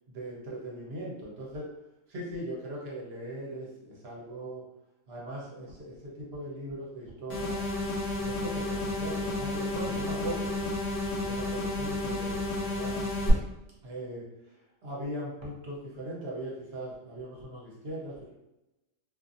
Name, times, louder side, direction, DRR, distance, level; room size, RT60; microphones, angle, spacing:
voice 1, 0.1-1.7 2.1-4.6 5.1-7.6 8.2-10.7 11.1-13.1 13.8-18.3, right 1 dB, 55° right, -4 dB, 0.9 m, -39 dB
sound 1, 7.3-13.3, left 2 dB, 65° left, 1.1 m, -32 dB
2.5 x 2.5 x 2.5 m, 0.94 s
omnidirectional pair, 1.5 m